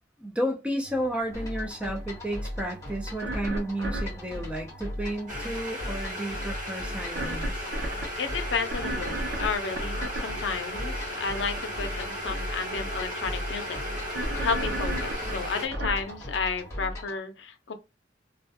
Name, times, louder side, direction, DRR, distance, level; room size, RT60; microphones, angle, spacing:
voice 1, 0.2-7.7, equal, 5° right, 0.4 m, -32 dB
sound 1, 0.8-16.7, right 1 dB, 85° right, 0.6 m, -38 dB
sound 2, 1.3-17.2, left 1 dB, 15° left, 1.0 m, -38 dB
sound 3, 5.3-15.7, equal, 45° right, 1.0 m, -36 dB
voice 2, 8.2-17.7, left 5 dB, 75° left, 0.5 m, -32 dB
2.3 x 2.1 x 2.6 m
head